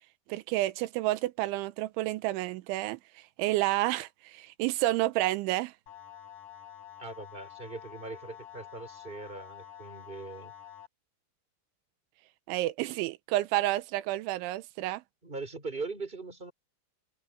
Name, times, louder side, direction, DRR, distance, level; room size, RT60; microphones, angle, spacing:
voice 1, 0.3-3.0 3.4-5.7 12.5-15.0, right 17 dB, 80° right, 3.2 m, -30 dB
sound 1, 5.9-10.9, left 11 dB, 40° left, 6.2 m, -48 dB
voice 2, 7.0-10.5 15.2-16.5, right 3 dB, 10° right, 4.7 m, -40 dB
omnidirectional pair, 5.5 m